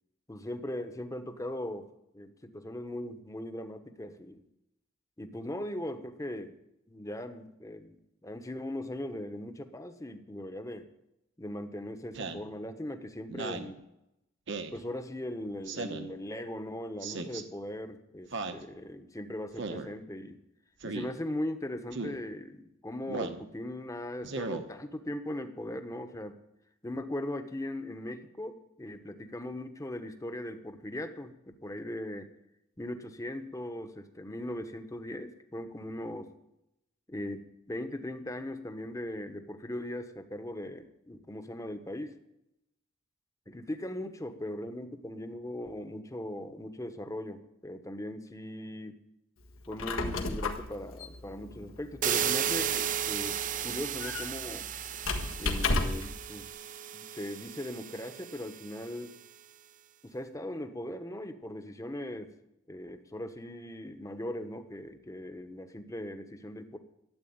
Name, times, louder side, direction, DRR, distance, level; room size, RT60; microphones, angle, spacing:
voice 1, 0.3-1.9 2.1-4.4 5.2-6.6 6.9-8.0 8.2-10.9 11.4-13.9 14.7-20.4 20.8-26.4 26.8-32.3 32.8-36.3 37.1-42.1 43.5-49.0 49.7-54.7 55.4-56.5 56.9-59.2 60.0-62.3 62.7-66.8, left 1 dB, 15° left, 8 dB, 1.0 m, -39 dB
Speech synthesizer, 12.1-12.5 13.3-13.7 14.5-14.8 15.7-16.1 17.0-17.4 18.3-18.6 19.6-19.9 20.8-21.1 21.9-22.2 23.1-23.4 24.2-24.6, right 3 dB, 60° right, 1.2 m, -36 dB
Squeak, 49.6-56.2, left 3 dB, 85° left, 1.6 m, -34 dB
sound 1, 52.0-58.8, right 9 dB, 40° right, 0.5 m, -34 dB
12.5 x 8.1 x 9.4 m, 0.86 s
head